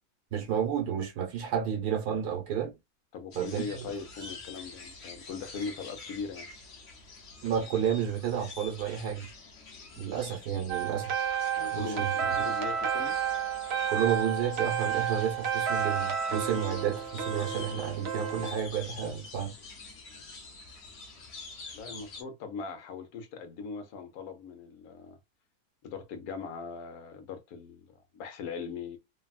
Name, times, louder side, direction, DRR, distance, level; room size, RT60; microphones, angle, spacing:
voice 1, 0.3-2.7 3.3-3.9 7.4-9.3 10.0-11.1 11.7-12.1 13.9-19.6, right 8 dB, 85° right, 1.5 m, -31 dB
voice 2, 3.1-6.5 11.6-13.2 20.1-20.3 21.7-25.2 25.8-29.0, left 5 dB, 70° left, 1.2 m, -40 dB
sound 1, 3.3-22.2, left 3 dB, 50° left, 1.0 m, -47 dB
sound 2, 10.7-18.5, right 8 dB, 60° right, 0.7 m, -31 dB
3.3 x 2.2 x 2.3 m
omnidirectional pair, 1.7 m